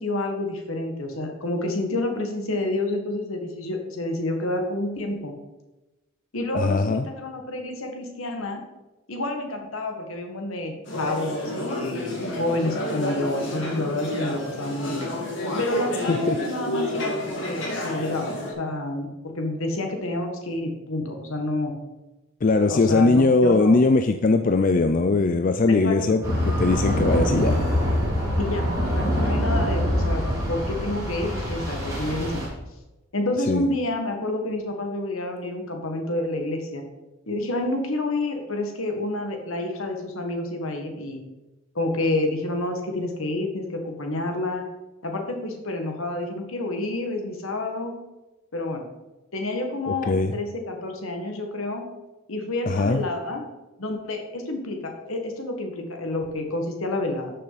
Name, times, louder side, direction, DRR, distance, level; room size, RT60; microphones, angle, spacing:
voice 1, 0.0-5.3 6.3-8.6 9.1-15.1 15.6-21.7 22.7-23.8 25.7-26.2 28.4-32.4 33.1-36.8 37.3-41.2 41.7-44.6 45.0-47.9 48.5-48.8 49.3-51.8 52.3-53.4 53.8-57.3, left 2 dB, 70° left, 4 dB, 1.7 m, -29 dB
voice 2, 6.5-7.1 16.1-16.4 22.4-27.6 33.5-33.7 49.9-50.3 52.7-53.0, left 3 dB, 35° left, 8 dB, 0.4 m, -20 dB
sound 1, 10.8-18.5, left 1 dB, 55° left, 2.3 m, -30 dB
sound 2, 26.2-32.5, equal, 15° right, 3.0 m, -24 dB
12.0 x 6.5 x 4.1 m, 1.1 s
head